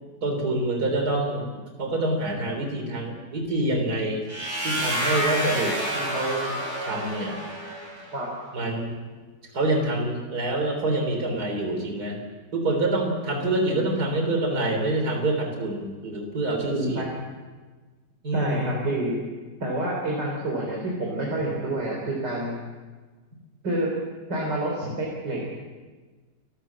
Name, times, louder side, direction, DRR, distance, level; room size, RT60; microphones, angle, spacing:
voice 1, 0.2-1.5 1.8-4.2 4.6-7.4 8.5-8.9 9.5-12.2 12.5-17.0 18.2-18.7, right 2 dB, 65° right, 3 dB, 4.2 m, -26 dB
sound 1, 4.3-8.1, equal, 45° right, 6.4 m, -29 dB
voice 2, 16.7-17.1 18.3-19.2 19.6-22.6 23.6-23.9 24.3-25.4, right 1 dB, 90° right, -2 dB, 4.3 m, -28 dB
28.5 x 13.5 x 7.4 m, 1.4 s
omnidirectional pair, 1.8 m